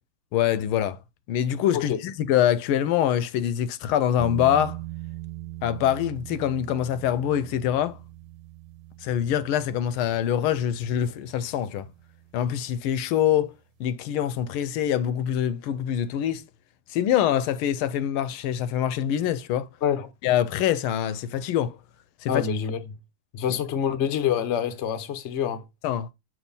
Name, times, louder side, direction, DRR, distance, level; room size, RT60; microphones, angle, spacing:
voice 1, 0.3-1.0 1.3-4.8 5.6-8.0 9.0-11.9 12.3-13.5 13.8-16.4 16.9-19.7 20.2-21.8 22.2-22.5 23.5-23.6 25.8-26.1, left 10 dB, 80° left, 1.4 m, -24 dB
sound 1, 4.2-13.1, right 16 dB, 75° right, 1.7 m, -41 dB
voice 2, 22.3-22.8 23.3-25.6, left 8 dB, 60° left, 0.7 m, -26 dB
6.2 x 3.1 x 5.3 m
omnidirectional pair, 2.4 m